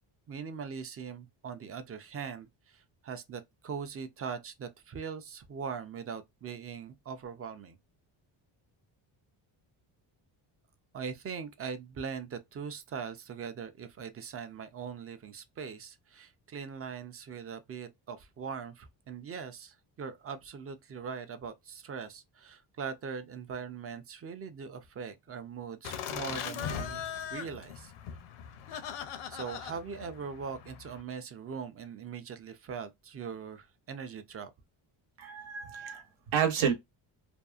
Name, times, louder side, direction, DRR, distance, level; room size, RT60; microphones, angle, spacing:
voice 1, 0.3-7.8 10.9-27.9 29.3-34.5, right 6 dB, 30° right, 0.4 m, -41 dB
Laughter, 25.8-31.0, left 8 dB, 85° left, 0.6 m, -40 dB
voice 2, 35.2-36.7, right 8 dB, 75° right, 1.0 m, -30 dB
2.6 x 2.4 x 2.3 m
cardioid pair, 130°, 49 cm